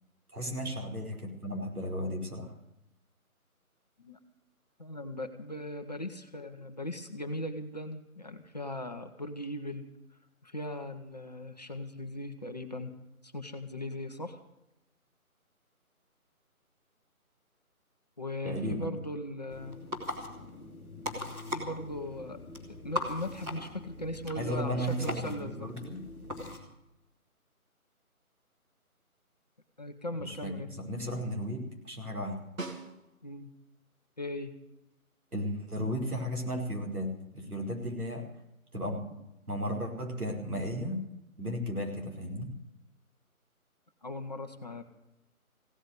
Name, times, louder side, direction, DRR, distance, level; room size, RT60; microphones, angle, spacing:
voice 1, 0.3-2.5 18.4-18.9 24.3-26.0 30.2-32.4 35.3-38.2 38.7-39.2 39.5-41.0 41.4-42.5, equal, 85° right, 0 dB, 5.0 m, -35 dB
voice 2, 4.8-9.9 10.4-13.0 13.2-14.4 18.2-19.8 21.5-22.4 22.8-25.7 29.8-30.7 33.2-33.5 34.2-34.6 44.0-44.8, left 1 dB, 30° left, 6 dB, 0.9 m, -38 dB
sound 1, 19.5-26.6, left 2 dB, 5° right, 1.5 m, -40 dB
Snare drum, 32.6-33.5 37.9-38.0, right 3 dB, 65° right, 2.6 m, -41 dB
16.5 x 8.7 x 9.3 m, 0.88 s
figure-of-eight pair, 160°, 44 cm